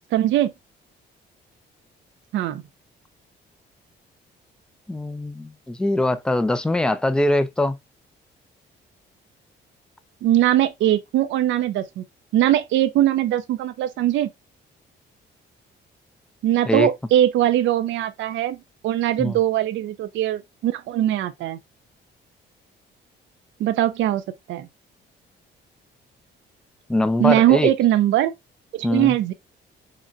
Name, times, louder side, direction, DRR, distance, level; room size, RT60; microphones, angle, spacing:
voice 1, 0.1-0.5 2.3-2.6 10.2-12.0 12.3-14.3 16.4-21.6 23.6-24.2 24.5-24.7 27.2-28.3 28.7-29.3, right 12 dB, 70° right, 0.4 m, -21 dB
voice 2, 4.9-7.8 16.7-16.9 19.2-19.4 26.9-27.7 28.8-29.1, left 1 dB, 5° left, 0.3 m, -22 dB
3.8 x 2.1 x 2.4 m
cardioid pair, 90°, 20 cm